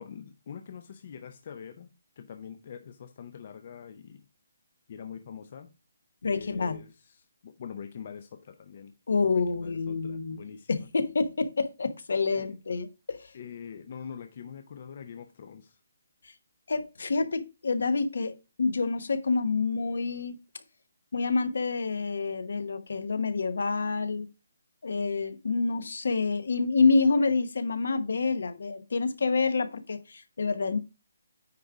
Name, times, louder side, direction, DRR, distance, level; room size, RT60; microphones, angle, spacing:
voice 1, 0.0-4.2 4.9-5.7 6.2-6.9 7.4-8.9 9.3-10.8 12.3-12.5 13.3-15.8, left 7 dB, 30° left, 0.5 m, -44 dB
voice 2, 6.2-6.8 9.1-13.3 16.2-16.3 16.7-20.4 21.1-24.3 24.8-30.8, left 4 dB, 60° left, 1.0 m, -28 dB
9.3 x 3.7 x 4.7 m
hypercardioid pair, 175°, 0 cm